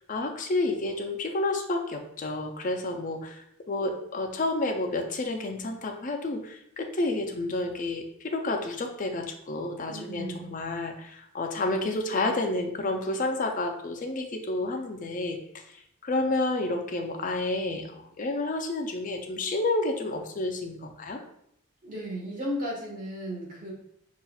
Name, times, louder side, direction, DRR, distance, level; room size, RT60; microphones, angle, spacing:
voice 1, 0.1-15.6 16.0-21.2, left 2 dB, 40° left, 4 dB, 0.4 m, -30 dB
voice 2, 9.9-10.5 21.8-23.7, equal, 35° right, -4 dB, 1.3 m, -35 dB
5.5 x 2.4 x 2.3 m, 0.73 s
head